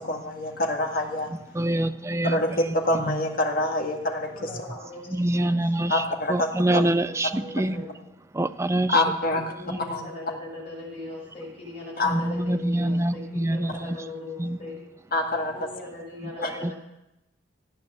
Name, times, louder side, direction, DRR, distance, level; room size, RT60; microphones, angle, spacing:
voice 1, 0.0-1.3 2.2-4.3 5.9-6.5 6.7-6.9 8.9-9.4 9.9-10.0 12.0-12.1 15.1-15.5 16.4-16.5, left 1 dB, 45° left, 1 dB, 1.9 m, -25 dB
voice 2, 1.5-2.4 2.7-2.8 5.1-7.8 8.3-9.0 9.7-9.8 12.1-14.0 14.4-14.6 16.6-16.7, right 1 dB, 15° right, 11 dB, 0.4 m, -25 dB
voice 3, 4.3-5.9 6.2-6.4 7.0-7.1 7.4-8.0 9.2-14.8 15.5-16.7, left 2 dB, 30° left, -6 dB, 5.9 m, -40 dB
15.0 x 8.9 x 6.9 m, 0.90 s
head